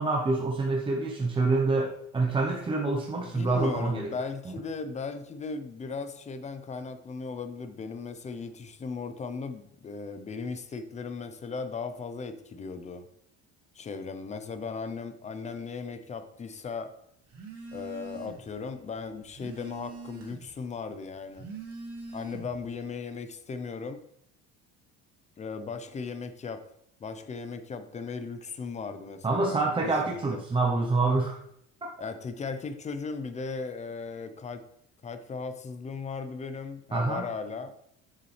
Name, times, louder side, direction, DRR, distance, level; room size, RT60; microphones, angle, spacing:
voice 1, 0.0-4.1 4.4-4.5 29.2-31.4 36.9-37.2, right 3 dB, 15° right, 0 dB, 0.9 m, -26 dB
voice 2, 3.2-13.1 13.7-16.9 17.7-21.5 22.1-24.0 25.4-26.6 27.0-30.0 30.3-30.4 32.0-34.6 35.0-37.7, left 4 dB, 25° left, 9 dB, 0.7 m, -37 dB
Telephone, 17.3-18.6 18.9-20.6 21.2-22.7, right 3 dB, 50° right, 2.5 m, -43 dB
7.3 x 6.7 x 3.3 m, 0.72 s
cardioid pair, 130°, 30 cm